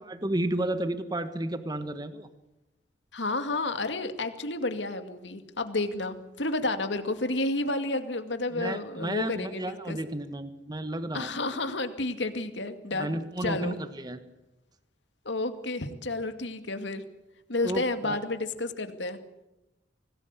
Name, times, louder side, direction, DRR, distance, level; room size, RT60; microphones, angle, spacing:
voice 1, 0.1-2.3 8.5-11.3 12.9-14.2 17.6-18.2, right 1 dB, 20° right, 10 dB, 1.4 m, -32 dB
voice 2, 3.1-10.0 11.1-13.8 15.2-17.0 17.5-19.2, left 2 dB, 85° left, 8 dB, 2.3 m, -31 dB
25.5 x 19.0 x 8.4 m, 0.95 s
head